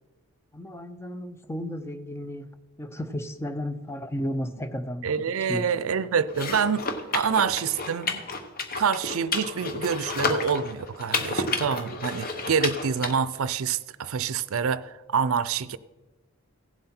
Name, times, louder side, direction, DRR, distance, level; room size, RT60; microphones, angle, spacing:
voice 1, 0.5-2.5 2.8-5.1 5.4-5.6, equal, 10° left, 10 dB, 0.5 m, -33 dB
voice 2, 5.0-6.9 7.1-8.2 8.8-15.8, right 6 dB, 70° right, 16 dB, 0.5 m, -26 dB
sound 1, 6.3-13.1, left 3 dB, 40° left, 1.0 m, -31 dB
16.5 x 7.6 x 4.3 m, 1.2 s
head